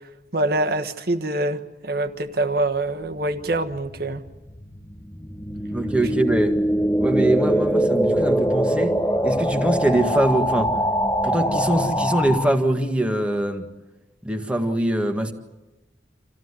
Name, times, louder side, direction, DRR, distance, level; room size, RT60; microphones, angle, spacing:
voice 1, 0.3-4.2, right 2 dB, 55° right, 7 dB, 1.4 m, -25 dB
sound 1, 3.2-12.5, equal, 15° left, 1.0 m, -23 dB
voice 2, 5.7-6.6 7.0-9.0 9.2-10.7 11.2-13.6 14.2-15.3, right 1 dB, 5° right, 4 dB, 1.7 m, -22 dB
28.0 x 15.5 x 9.7 m, 1.1 s
head